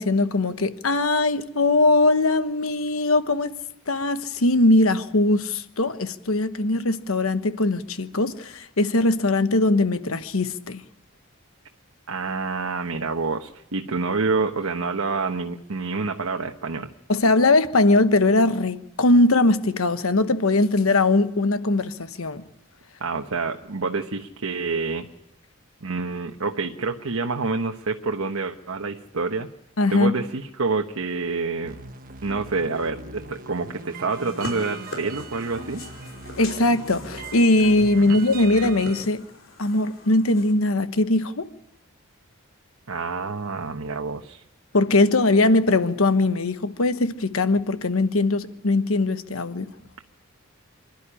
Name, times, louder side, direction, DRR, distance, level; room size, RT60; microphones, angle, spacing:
voice 1, 0.0-3.6 3.9-10.8 17.1-22.4 29.8-30.1 36.4-39.2 39.6-41.5 44.7-49.7, left 2 dB, 85° left, 1.2 m, -20 dB
voice 2, 12.1-16.9 23.0-25.1 25.8-29.5 29.9-31.8 32.2-35.8 38.0-38.2 42.9-44.4, right 4 dB, 85° right, 1.2 m, -27 dB
sound 1, 31.6-39.0, right 4 dB, 40° right, 1.1 m, -40 dB
sound 2, 34.1-40.5, left 2 dB, 65° left, 4.9 m, -41 dB
26.0 x 12.0 x 10.0 m
head